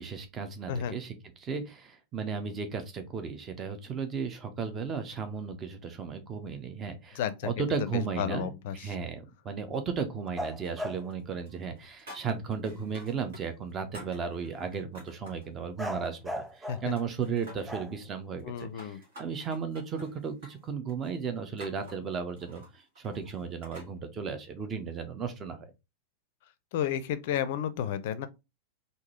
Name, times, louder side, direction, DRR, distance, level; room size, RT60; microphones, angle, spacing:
voice 1, 0.0-25.7, right 6 dB, 25° right, 0.8 m, -35 dB
voice 2, 7.2-7.5 7.9-8.9 16.7-16.9 18.4-19.0 26.7-28.3, left 9 dB, 50° left, 0.5 m, -32 dB
sound 1, 10.4-11.1 15.8-16.9 17.6-18.6, equal, 5° right, 0.5 m, -37 dB
sound 2, 10.6-11.2 11.5-13.4 13.7-15.5 15.9-16.7 17.0-17.8 18.4-23.9, equal, 60° right, 1.9 m, -51 dB
3.8 x 2.6 x 3.0 m
figure-of-eight pair, 90°, 0 cm